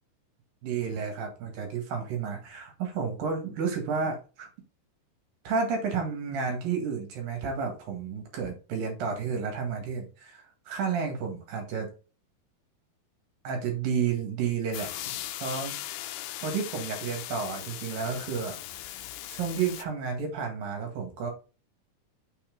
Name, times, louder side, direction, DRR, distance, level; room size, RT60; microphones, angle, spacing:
voice 1, 0.6-4.5 5.5-11.9 13.4-15.1 15.4-15.8 16.4-19.0 19.3-21.3, right 6 dB, 70° right, 3 dB, 3.5 m, -31 dB
sound 1, 14.7-19.8, left 14 dB, 90° left, 1.9 m, -38 dB
6.3 x 5.6 x 3.9 m, 0.33 s
omnidirectional pair, 4.3 m